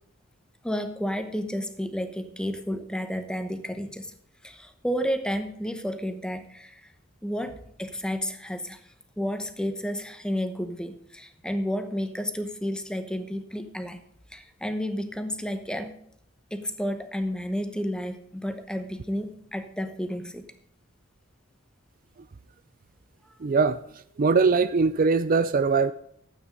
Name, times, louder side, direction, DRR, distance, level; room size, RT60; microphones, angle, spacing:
voice 1, 0.6-4.1 4.4-6.9 7.2-8.8 9.2-14.0 14.3-15.9 16.5-20.4, equal, 5° left, 9 dB, 0.9 m, -31 dB
voice 2, 23.4-23.8 24.2-25.9, right 4 dB, 45° right, 13 dB, 0.4 m, -21 dB
12.5 x 8.9 x 5.3 m, 0.67 s
head